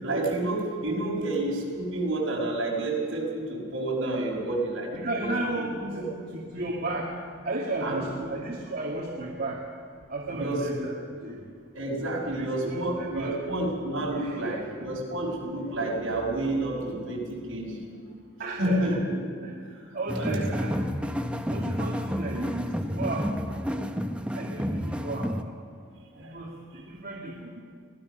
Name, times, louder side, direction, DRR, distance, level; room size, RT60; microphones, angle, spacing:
voice 1, 0.0-5.3 5.9-6.0 7.8-8.3 10.3-10.6 11.1-11.2 11.7-17.8 18.6-19.2 20.1-20.4, right 2 dB, 65° right, -2 dB, 5.9 m, -29 dB
voice 2, 4.9-7.1 7.4-9.6 10.1-10.9 11.2-11.4 12.3-13.4 14.1-14.6 18.4-19.0 19.4-19.6 19.9-20.8 21.5-23.6 24.3-25.3 26.2-27.6, right 2 dB, 50° right, -3 dB, 2.0 m, -34 dB
sound 1, 20.1-25.4, equal, 5° right, 0.8 m, -30 dB
24.0 x 17.5 x 6.5 m, 2.2 s
head